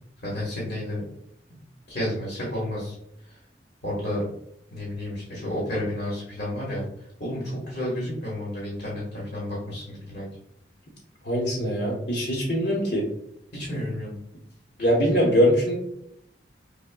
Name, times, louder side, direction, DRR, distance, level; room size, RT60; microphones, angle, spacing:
voice 1, 0.2-1.0 1.9-2.9 3.3-3.4 3.8-4.2 4.7-10.3 13.5-14.1, left 1 dB, 45° left, -5 dB, 1.3 m, -31 dB
voice 2, 11.2-13.1 14.8-15.7, equal, 60° left, -5 dB, 1.0 m, -22 dB
6.1 x 2.1 x 2.2 m, 0.76 s
head